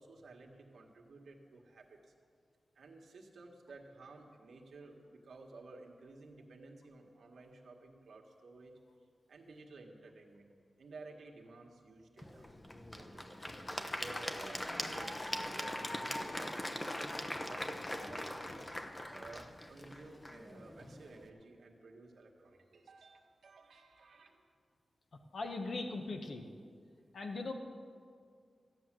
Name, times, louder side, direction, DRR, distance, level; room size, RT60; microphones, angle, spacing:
voice 1, 0.0-2.1 2.8-8.7 9.3-10.5 10.8-12.5 13.0-13.3 13.7-18.6 19.1-24.4, right 3 dB, 90° right, 0 dB, 1.7 m, -54 dB
Applause / Crowd, 12.2-21.3, left 1 dB, 15° left, 0.8 m, -41 dB
voice 2, 25.3-26.5 27.1-27.5, left 3 dB, 60° left, 4 dB, 1.0 m, -39 dB
14.5 x 9.8 x 7.6 m, 2.2 s
wide cardioid pair, 150°, 0 cm